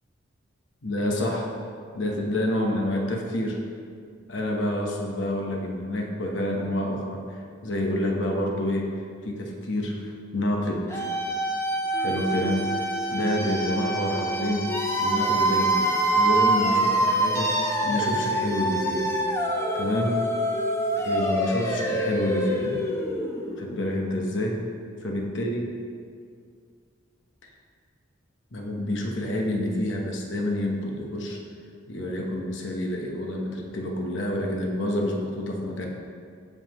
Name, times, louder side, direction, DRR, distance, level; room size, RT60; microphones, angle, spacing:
voice 1, 0.8-1.5 1.9-3.6 4.3-8.9 9.2-11.1 12.0-12.7 13.1-14.7 15.0-19.1 19.7-20.1 20.9-22.8 23.6-24.6 25.0-25.6 27.4-27.5 28.5-31.4 31.9-35.9, left 1 dB, 70° left, 0 dB, 1.1 m, -28 dB
sound 1, 10.9-23.7, right 1 dB, 15° left, 0.7 m, -25 dB
15.0 x 5.5 x 3.1 m, 2.2 s
head